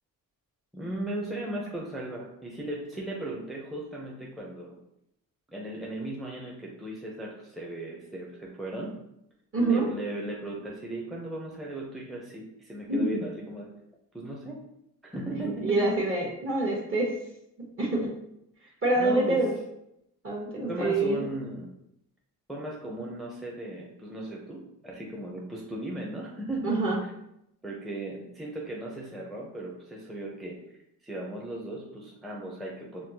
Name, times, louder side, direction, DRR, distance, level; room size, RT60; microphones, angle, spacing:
voice 1, 0.7-4.8 5.5-8.9 9.6-13.7 14.1-14.6 15.0-15.9 18.6-19.4 20.7-21.7 22.5-26.7 27.6-30.6 31.0-33.0, right 1 dB, ahead, -3 dB, 0.6 m, -37 dB
voice 2, 9.5-9.9 12.9-13.2 15.4-17.1 17.8-18.1 18.8-19.5 20.2-21.3 26.6-27.0, right 2 dB, 35° right, -3 dB, 1.1 m, -26 dB
4.3 x 2.0 x 2.8 m, 0.80 s
cardioid pair, 75°, 35 cm